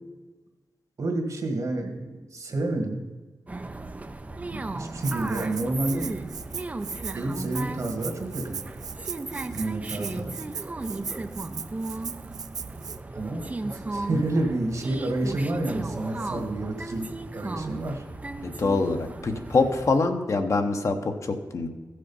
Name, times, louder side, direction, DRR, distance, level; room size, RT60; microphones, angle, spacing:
voice 1, 1.0-3.0 4.5-6.1 7.1-8.6 9.5-10.3 13.1-18.0, right 2 dB, 55° right, 4 dB, 1.7 m, -29 dB
sound 1, 3.5-20.0, right 2 dB, 20° right, 0.5 m, -36 dB
Rattle (instrument), 5.0-13.0, right 7 dB, 75° right, 0.4 m, -38 dB
voice 2, 18.4-21.7, left 3 dB, 50° left, 5 dB, 0.9 m, -25 dB
15.0 x 6.5 x 5.4 m, 1.3 s
wide cardioid pair, 145°, 7 cm